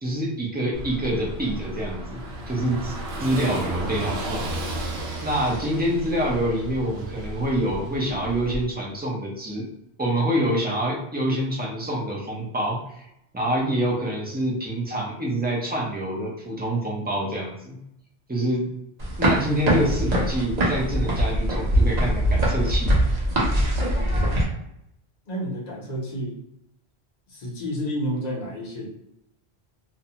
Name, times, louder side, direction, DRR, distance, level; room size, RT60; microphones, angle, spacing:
voice 1, 0.0-2.2 2.5-2.9 3.2-4.4 5.2-9.6 10.0-13.1 13.3-17.8 18.3-18.6 19.2-22.9, right 1 dB, 15° right, -2 dB, 0.3 m, -26 dB
Car passing by / Engine, 0.7-8.6, right 1 dB, 90° right, 0.9 m, -33 dB
sound 1, 19.0-24.4, right 1 dB, 45° right, 0.7 m, -22 dB
voice 2, 25.3-26.4 27.3-28.9, equal, 45° left, -3 dB, 0.8 m, -30 dB
2.6 x 2.1 x 2.8 m, 0.80 s
omnidirectional pair, 1.1 m